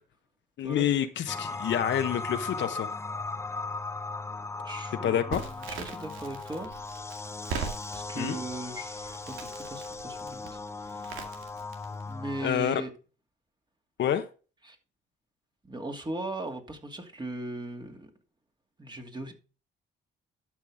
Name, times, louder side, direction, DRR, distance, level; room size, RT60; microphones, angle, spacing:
voice 1, 0.6-2.9 5.0-5.5 8.1-8.4 12.4-12.8 14.0-14.3, left 10 dB, 65° left, 1.1 m, -28 dB
sound 1, 1.3-12.5, left 3 dB, 15° left, 0.7 m, -37 dB
voice 2, 4.6-6.7 7.9-11.4 12.0-12.9 14.6-14.8 15.6-18.1 18.8-19.3, right 2 dB, 20° right, 2.5 m, -38 dB
Crackle, 5.3-12.1, right 6 dB, 90° right, 2.1 m, -41 dB
12.0 x 6.0 x 3.5 m
cardioid pair, 90°, 20 cm